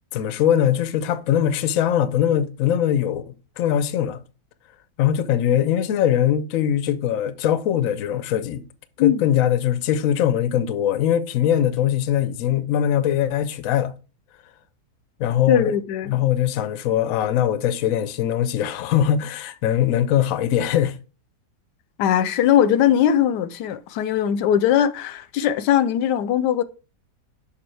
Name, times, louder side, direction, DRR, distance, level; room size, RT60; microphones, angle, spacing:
voice 1, 0.1-4.2 5.0-8.6 9.0-13.9 15.2-15.7 16.1-21.0, left 10 dB, 65° left, 0.9 m, -21 dB
voice 2, 15.5-16.2 22.0-26.6, left 10 dB, 85° left, 1.2 m, -20 dB
6.8 x 5.5 x 3.2 m
omnidirectional pair, 1.8 m